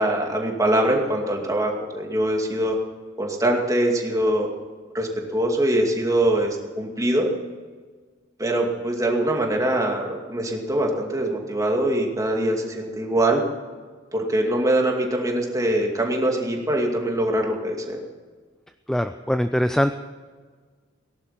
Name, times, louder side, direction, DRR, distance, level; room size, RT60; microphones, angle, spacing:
voice 1, 0.0-2.8 3.2-4.5 4.9-7.3 8.4-13.4 14.1-18.0, right 1 dB, 15° right, 1 dB, 2.4 m, -23 dB
voice 2, 18.9-19.9, equal, 5° left, 8 dB, 0.4 m, -22 dB
18.5 x 11.5 x 5.8 m, 1.5 s
head